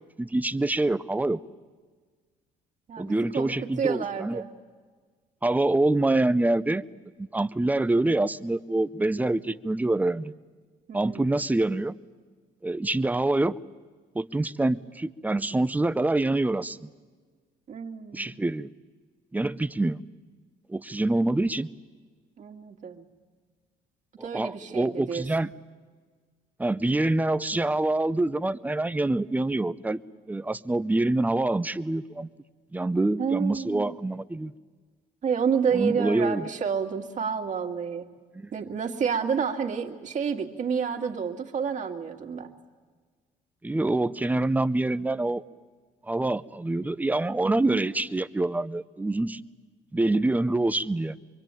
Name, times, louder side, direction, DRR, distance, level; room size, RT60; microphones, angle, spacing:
voice 1, 0.2-1.4 3.0-4.4 5.4-6.8 7.2-10.3 10.9-12.0 12.6-13.6 14.1-16.9 18.1-18.7 19.3-20.0 20.7-21.7 24.2-25.5 26.6-30.0 30.3-32.3 32.7-34.5 35.7-36.5 38.3-38.5 43.6-45.4 46.0-49.4 49.9-51.2, right 2 dB, 10° right, 14 dB, 0.7 m, -26 dB
voice 2, 2.9-3.5 3.8-4.5 10.9-11.2 17.7-18.4 22.4-23.0 24.2-25.2 33.2-33.9 35.2-38.1 38.5-42.5 47.4-47.8, right 6 dB, 45° right, 4 dB, 2.3 m, -29 dB
25.0 x 23.0 x 9.1 m, 1.5 s
cardioid pair, 110°, 17 cm